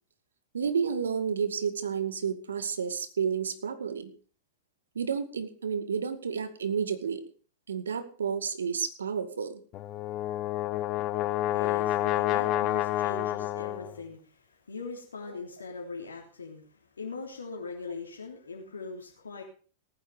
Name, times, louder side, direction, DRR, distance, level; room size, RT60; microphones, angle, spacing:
voice 1, 0.5-4.1 5.0-7.2 7.7-9.6 12.5-12.6, right 6 dB, 80° right, 11 dB, 2.2 m, -31 dB
Brass instrument, 9.7-14.0, left 14 dB, 40° left, 1.2 m, -29 dB
voice 2, 11.5-19.4, left 4 dB, 85° left, -1 dB, 3.3 m, -41 dB
18.0 x 10.0 x 5.1 m, 0.42 s
hypercardioid pair, 100°, 0 cm